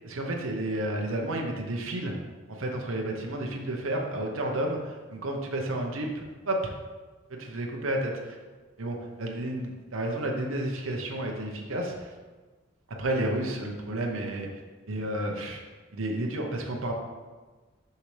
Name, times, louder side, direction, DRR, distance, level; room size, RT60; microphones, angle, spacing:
voice 1, 0.0-2.2 2.6-6.7 7.3-8.4 8.8-12.1 13.0-14.5 14.9-15.6 15.9-16.9, right 1 dB, 75° right, 1 dB, 0.8 m, -31 dB
6.6 x 5.6 x 3.2 m, 1.3 s
head